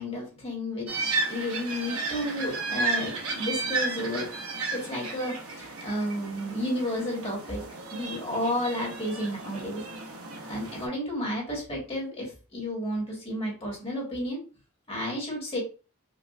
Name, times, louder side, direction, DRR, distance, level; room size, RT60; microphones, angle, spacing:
voice 1, 0.0-4.3 4.7-7.6 7.9-9.8 10.5-14.4 14.9-15.6, left 1 dB, 25° left, -2 dB, 1.5 m, -32 dB
sound 1, 0.9-10.9, right 3 dB, 85° right, 0.8 m, -33 dB
4.8 x 2.3 x 2.4 m, 0.33 s
head